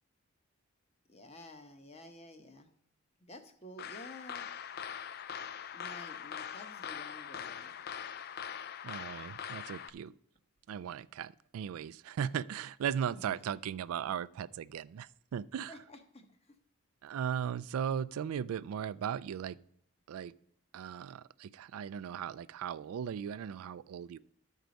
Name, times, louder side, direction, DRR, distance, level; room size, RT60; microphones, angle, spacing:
voice 1, 1.1-2.7 3.2-4.5 5.7-7.7 15.7-16.3, left 1 dB, 30° left, 0.9 m, -51 dB
sound 1, 3.8-9.9, left 8 dB, 45° left, 0.3 m, -42 dB
voice 2, 8.8-10.1 10.7-15.8 17.0-19.6 20.1-20.3 20.7-24.2, right 8 dB, 80° right, 0.3 m, -37 dB
13.0 x 4.6 x 5.2 m
head